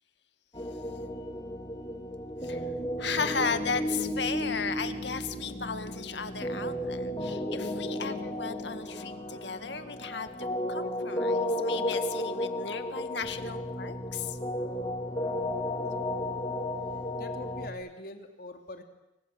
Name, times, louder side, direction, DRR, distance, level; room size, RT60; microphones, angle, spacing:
sound 1, 0.5-17.7, left 1 dB, 25° left, 3.4 m, -33 dB
voice 1, 2.3-3.0 14.8-14.9 15.3-15.4 17.2-18.8, left 2 dB, 55° left, 5 dB, 2.9 m, -44 dB
voice 2, 3.0-14.4, left 5 dB, 75° left, 9 dB, 2.1 m, -35 dB
29.0 x 25.5 x 7.8 m, 0.94 s
head